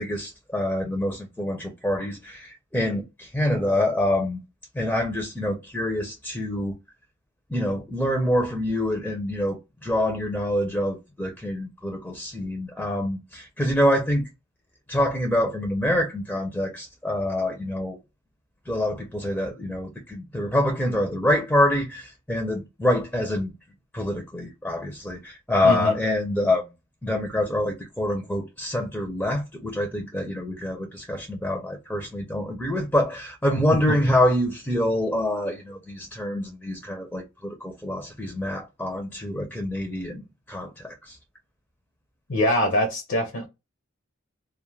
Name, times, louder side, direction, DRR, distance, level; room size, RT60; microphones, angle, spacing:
voice 1, 0.0-4.4 4.7-6.7 7.5-14.3 14.9-18.0 18.7-23.5 23.9-26.6 27.0-40.2 40.5-41.2, left 1 dB, 5° left, 0.5 m, -26 dB
voice 2, 42.3-43.5, equal, 70° left, 0.7 m, -23 dB
2.2 x 2.1 x 3.1 m
head